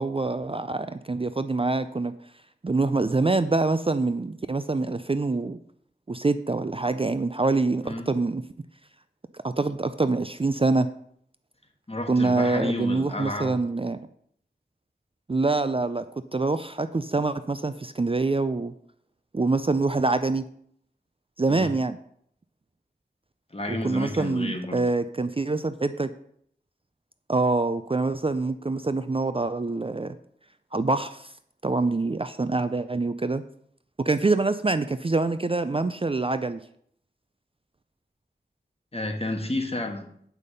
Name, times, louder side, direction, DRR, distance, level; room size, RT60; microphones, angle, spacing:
voice 1, 0.0-2.1 2.6-5.6 6.1-8.4 9.4-10.9 12.1-14.0 15.3-16.1 16.3-18.7 19.3-20.4 21.4-22.0 23.8-26.1 27.3-30.2 30.7-31.3 31.6-33.4 34.0-36.6, right 3 dB, 30° right, 11 dB, 0.4 m, -25 dB
voice 2, 11.9-13.6 21.5-21.7 23.5-24.8 38.9-40.0, left 1 dB, 35° left, 4 dB, 1.4 m, -31 dB
8.3 x 5.4 x 6.7 m, 0.66 s
wide cardioid pair, 55°, 18 cm